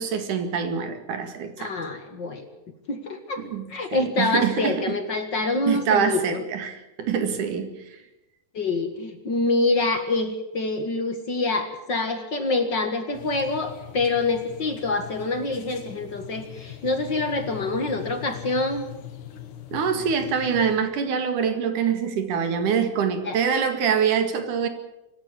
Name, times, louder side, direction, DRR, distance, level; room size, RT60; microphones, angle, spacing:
voice 1, 0.0-1.7 3.4-5.0 5.7-7.8 19.7-24.7, right 7 dB, 85° right, 8 dB, 3.5 m, -25 dB
voice 2, 1.6-2.4 2.9-3.4 3.7-6.4 8.5-18.8 23.2-23.4, left 2 dB, 40° left, 7 dB, 2.0 m, -26 dB
sound 1, 13.1-20.8, left 11 dB, 75° left, 3.0 m, -41 dB
25.0 x 12.0 x 9.8 m, 0.98 s
omnidirectional pair, 3.5 m